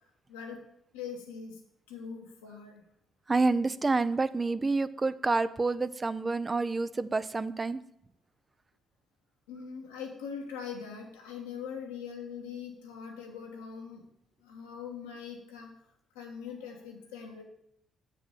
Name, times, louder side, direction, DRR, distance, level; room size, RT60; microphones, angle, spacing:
voice 1, 0.3-0.6 0.9-1.6 1.9-2.8 9.5-14.0 14.4-15.7 16.1-17.4, left 6 dB, 85° left, 1 dB, 1.3 m, -42 dB
voice 2, 3.3-7.8, right 3 dB, 30° right, 14 dB, 0.5 m, -28 dB
7.0 x 4.9 x 6.4 m, 0.74 s
hypercardioid pair, 50°, 0 cm